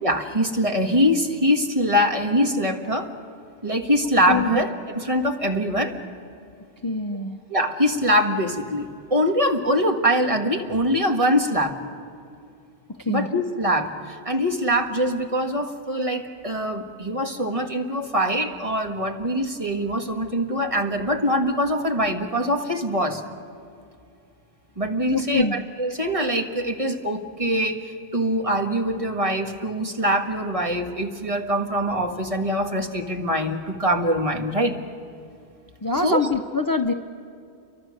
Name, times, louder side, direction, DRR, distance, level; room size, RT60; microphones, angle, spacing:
voice 1, 0.0-3.1 3.6-5.9 7.5-11.8 13.1-23.2 24.8-34.8 36.0-36.2, equal, 35° right, 4 dB, 1.7 m, -23 dB
voice 2, 4.3-4.6 6.8-7.4 13.0-13.3 25.1-25.6 35.8-36.9, left 4 dB, 25° left, 7 dB, 0.7 m, -24 dB
30.0 x 24.0 x 6.5 m, 2.5 s
omnidirectional pair, 1.1 m